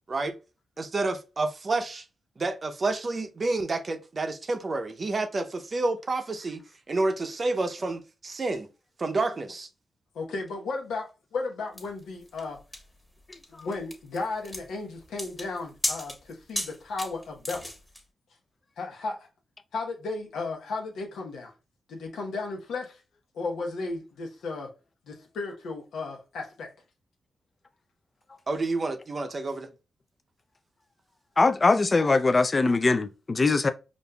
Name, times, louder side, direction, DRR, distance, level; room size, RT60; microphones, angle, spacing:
voice 1, 0.8-2.0 2.4-6.6 6.9-8.7 9.0-9.7 28.5-29.7, right 3 dB, 45° right, 0.6 m, -29 dB
voice 2, 10.1-12.6 13.5-17.7 18.8-19.3 19.7-21.5 21.9-23.0 23.3-24.7 25.1-26.7, left 3 dB, 90° left, 0.9 m, -34 dB
sound 1, 11.8-18.0, equal, 10° left, 1.2 m, -36 dB
voice 3, 31.4-33.7, left 3 dB, 35° left, 0.4 m, -22 dB
5.1 x 2.5 x 2.2 m
cardioid pair, 65°, 0 cm